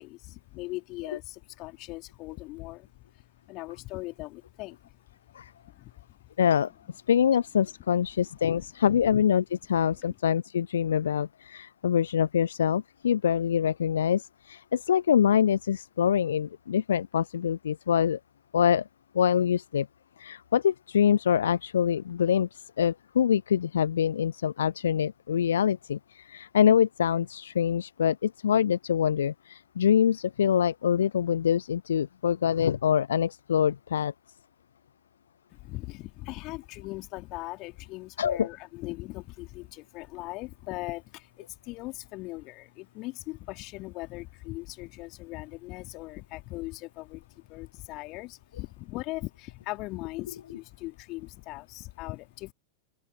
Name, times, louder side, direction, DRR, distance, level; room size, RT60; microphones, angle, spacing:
voice 1, 0.0-4.9 5.6-6.2 35.5-52.5, left 21 dB, 40° left, 2.8 m, -40 dB
voice 2, 6.4-6.7 7.1-18.2 18.5-18.9 19.1-19.9 20.2-34.1 38.2-38.5, left 8 dB, 65° left, 0.3 m, -25 dB
open air
figure-of-eight pair, 90°, 0 cm